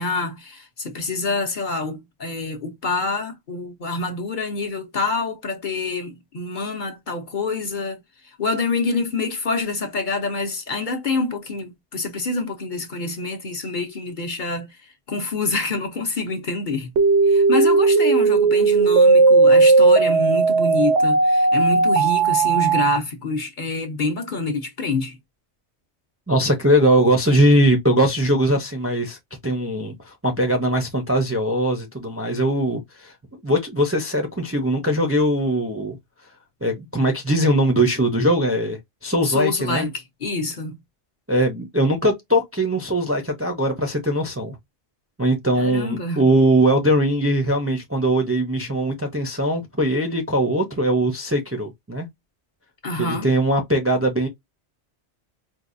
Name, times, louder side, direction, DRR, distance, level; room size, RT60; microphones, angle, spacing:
voice 1, 0.0-8.0 8.4-14.8 15.1-16.9 17.2-25.2 39.2-40.8 45.6-46.3 52.8-53.3, left 3 dB, 50° left, 0.8 m, -26 dB
sound 1, 17.0-23.0, right 3 dB, 80° right, 1.0 m, -16 dB
voice 2, 26.3-29.2 29.4-33.1 33.4-36.0 36.6-39.9 41.3-44.6 45.2-52.1 53.0-54.3, right 1 dB, 15° right, 0.5 m, -21 dB
4.6 x 2.3 x 2.5 m
omnidirectional pair, 1.2 m